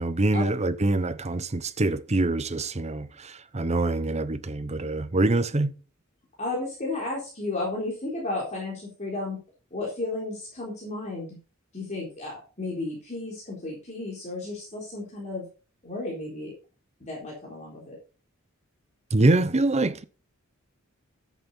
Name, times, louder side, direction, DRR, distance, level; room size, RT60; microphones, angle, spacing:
voice 1, 0.0-5.7 19.1-20.0, right 2 dB, 30° right, 0.8 m, -25 dB
voice 2, 6.4-9.4 9.7-11.4 11.7-15.4 15.8-16.5 17.0-18.0, left 2 dB, 35° left, 3.9 m, -33 dB
11.0 x 8.2 x 4.3 m
head